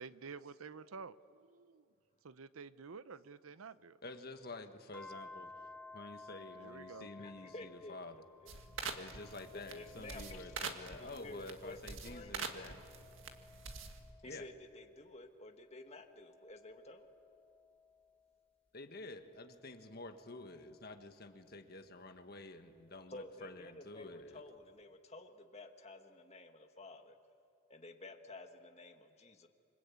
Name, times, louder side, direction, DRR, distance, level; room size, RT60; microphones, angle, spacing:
voice 1, 0.0-1.8 2.2-4.0 6.5-7.1, right 5 dB, 85° right, 15 dB, 0.7 m, -50 dB
voice 2, 4.0-5.5 5.9-8.2 8.9-12.8 14.3-14.4 18.7-24.4, left 2 dB, 45° left, 6 dB, 1.6 m, -49 dB
sound 1, 4.9-11.6 12.1-15.0 15.6-18.4 19.1-21.6 22.9-24.0, left 3 dB, 5° left, 1.0 m, -58 dB
voice 3, 7.2-7.9 8.4-8.9 9.5-10.4 10.7-12.4 14.2-17.1 23.1-27.1 27.7-29.5, left 2 dB, 30° left, 5 dB, 1.6 m, -52 dB
sound 2, 8.5-14.1, right 4 dB, 65° right, 1.8 m, -46 dB
sound 3, 9.7-11.0, left 10 dB, 75° left, 1.8 m, -62 dB
27.0 x 25.0 x 8.5 m, 2.5 s
head